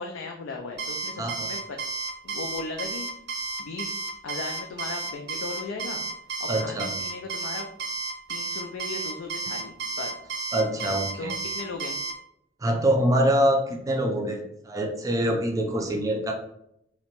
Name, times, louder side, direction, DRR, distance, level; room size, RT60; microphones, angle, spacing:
voice 1, 0.0-1.8 2.2-3.1 3.6-3.9 4.2-6.1 6.4-7.7 8.3-10.1 11.2-12.0, left 3 dB, 80° left, 2 dB, 0.3 m, -37 dB
Alarm, 0.8-12.1, right 3 dB, 60° right, 0.6 m, -32 dB
voice 2, 6.5-6.9 10.5-11.3 12.6-16.3, right 1 dB, 20° right, 1 dB, 0.4 m, -25 dB
2.8 x 2.1 x 2.9 m, 0.76 s
head